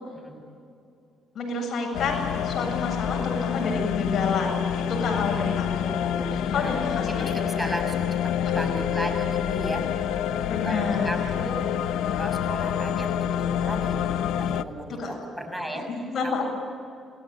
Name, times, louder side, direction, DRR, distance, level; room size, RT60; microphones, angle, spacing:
voice 1, 1.3-7.3 8.4-8.7 10.5-11.4 14.9-15.1 15.7-16.5, left 4 dB, 55° left, 2 dB, 7.9 m, -29 dB
sound 1, 1.9-14.6, left 9 dB, 90° left, 0.8 m, -27 dB
voice 2, 6.5-9.9 10.6-11.7 12.1-15.9 16.2-16.5, equal, 5° right, 4 dB, 6.3 m, -35 dB
29.0 x 19.0 x 9.2 m, 2.4 s
cardioid pair, 90°, 0 cm